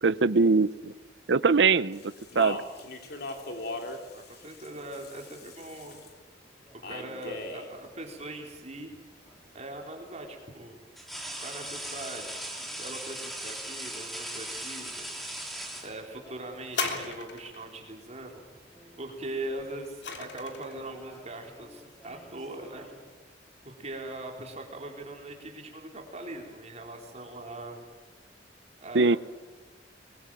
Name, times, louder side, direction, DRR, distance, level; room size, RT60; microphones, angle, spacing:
voice 1, 0.0-0.9 1.3-2.0 2.3-2.6 28.9-29.2, right 4 dB, 75° right, 17 dB, 0.7 m, -22 dB
Speech, 1.9-6.1 6.8-7.7, left 2 dB, 60° left, 3.2 m, -39 dB
voice 2, 4.1-6.0 6.9-8.9 9.5-10.8 11.4-12.4 12.8-15.5 15.8-18.4 19.0-22.9 23.6-27.8 28.8-29.2, right 1 dB, 40° right, 1 dB, 4.0 m, -41 dB
sound 1, 6.7-7.5 9.3-9.4 11.0-16.4 17.6-17.8 18.2-19.0 19.2-19.6 20.5-23.1, right 1 dB, ahead, 3.6 m, -41 dB
sound 2, 16.7-17.7 19.4-20.8 21.6-21.7, left 5 dB, 75° left, 3.1 m, -35 dB
23.5 x 21.5 x 9.1 m, 1.3 s
head